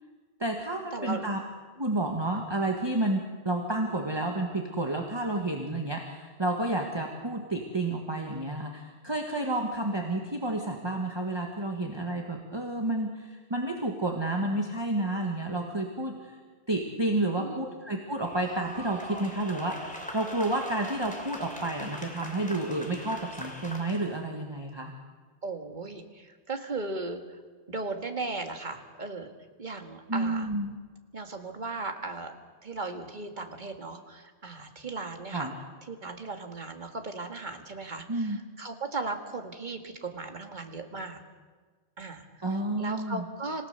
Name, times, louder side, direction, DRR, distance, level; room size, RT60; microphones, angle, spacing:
voice 1, 0.4-1.4 1.8-16.4 16.7-24.9 30.1-30.7 35.3-35.5 38.1-38.4 42.4-43.3, right 2 dB, 25° right, 2 dB, 1.6 m, -30 dB
voice 2, 0.9-1.3 17.4-17.7 25.4-27.4 27.7-29.3 29.6-30.5 31.1-32.3 32.6-35.5 35.9-41.2 42.0-42.3 42.8-43.7, right 3 dB, 45° right, 5 dB, 1.9 m, -37 dB
sound 1, 18.2-24.2, equal, 5° left, 3.0 m, -42 dB
26.5 x 16.5 x 6.7 m, 1.4 s
omnidirectional pair, 1.1 m